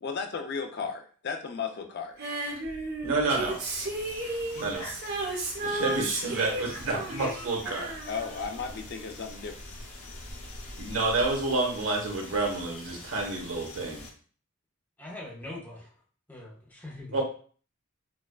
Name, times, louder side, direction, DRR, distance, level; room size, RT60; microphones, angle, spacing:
voice 1, 0.0-2.2 8.1-9.6, left 5 dB, 50° left, 5 dB, 0.4 m, -34 dB
Female singing, 2.2-9.1 10.3-10.4, right 2 dB, 50° right, 0.9 m, -34 dB
voice 2, 3.0-3.6 4.5-4.9 5.6-7.9 10.8-14.0 17.1-17.2, right 3 dB, 70° right, 0 dB, 1.0 m, -29 dB
sound 1, 3.5-14.1, left 2 dB, 90° left, 0.8 m, -44 dB
voice 3, 15.0-16.0 16.3-17.2, left 1 dB, 10° left, -3 dB, 0.7 m, -42 dB
4.5 x 2.3 x 2.3 m, 0.43 s
head